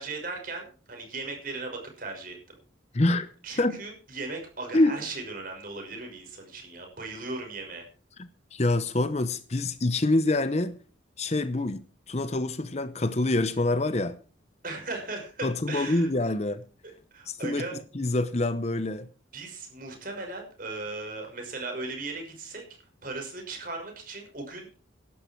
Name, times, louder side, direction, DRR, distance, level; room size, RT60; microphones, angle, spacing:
voice 1, 0.0-2.4 3.4-7.9 14.6-16.1 16.8-17.8 19.3-22.6 23.0-24.8, right 3 dB, 45° right, 6.0 m, -37 dB
voice 2, 2.9-3.3 3.6-3.8 4.7-5.0 8.2-10.8 11.2-14.2 15.4-16.6 17.3-17.7 17.9-19.1, left 2 dB, 35° left, 0.8 m, -26 dB
16.5 x 12.0 x 4.6 m
head